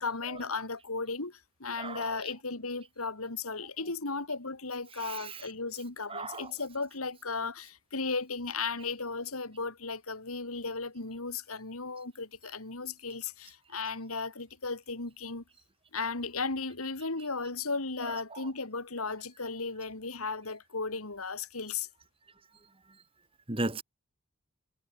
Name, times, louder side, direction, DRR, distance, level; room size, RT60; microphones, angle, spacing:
voice 1, 0.0-15.4 15.9-21.9, left 4 dB, 75° left, 2.7 m, -35 dB
voice 2, 1.8-2.1 5.0-5.5 6.1-6.5 18.0-18.4 23.5-23.8, right 2 dB, 25° right, 2.3 m, -36 dB
head